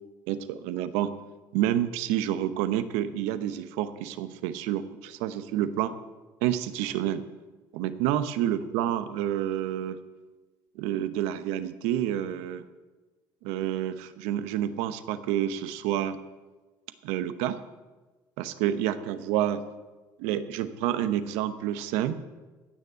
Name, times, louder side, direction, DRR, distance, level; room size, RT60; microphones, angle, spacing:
voice 1, 0.3-1.1 1.5-5.9 6.4-7.2 7.7-10.0 10.8-12.6 13.4-16.2 17.0-17.6 18.4-19.6 20.2-22.2, right 11 dB, 80° right, 12 dB, 0.9 m, -29 dB
16.0 x 6.8 x 8.2 m, 1.2 s
hypercardioid pair, 70°, 11 cm